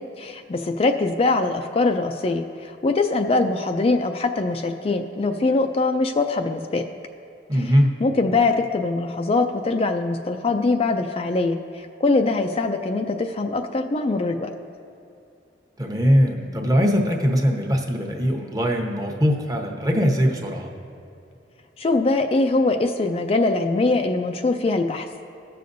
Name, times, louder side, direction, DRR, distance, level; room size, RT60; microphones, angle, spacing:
voice 1, 0.2-6.8 7.5-7.7 8.0-14.5 21.8-25.1, left 3 dB, 35° left, 5 dB, 0.4 m, -22 dB
voice 2, 7.5-7.9 15.8-20.7, equal, 20° right, 2 dB, 0.9 m, -21 dB
20.0 x 6.7 x 2.6 m, 2.7 s
head